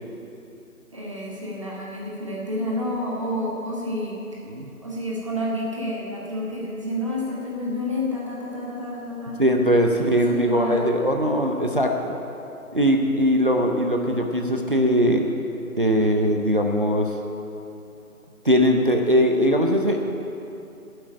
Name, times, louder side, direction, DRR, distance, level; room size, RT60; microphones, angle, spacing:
voice 1, 0.9-4.4 4.8-9.4 9.9-10.9, left 1 dB, 20° right, -4 dB, 1.2 m, -29 dB
voice 2, 4.5-4.8 9.4-12.1 12.7-15.2 15.8-17.1 18.4-20.0, equal, 35° right, 2 dB, 0.6 m, -20 dB
9.2 x 7.7 x 8.4 m, 2.9 s
figure-of-eight pair, 155°, 45 cm